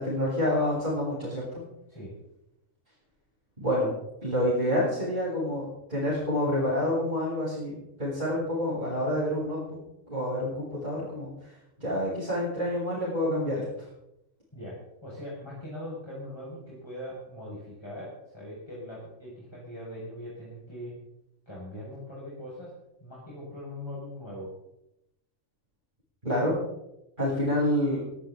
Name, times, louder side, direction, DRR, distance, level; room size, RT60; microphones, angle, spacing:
voice 1, 0.0-1.6 3.6-3.9 4.2-9.8 10.1-13.9 26.2-26.5 27.2-28.0, left 1 dB, 35° right, -9 dB, 8.2 m, -28 dB
voice 2, 15.0-20.9 21.5-22.7 23.0-24.5, left 1 dB, 20° left, -7 dB, 6.0 m, -41 dB
19.5 x 17.0 x 4.0 m, 0.87 s
omnidirectional pair, 1.4 m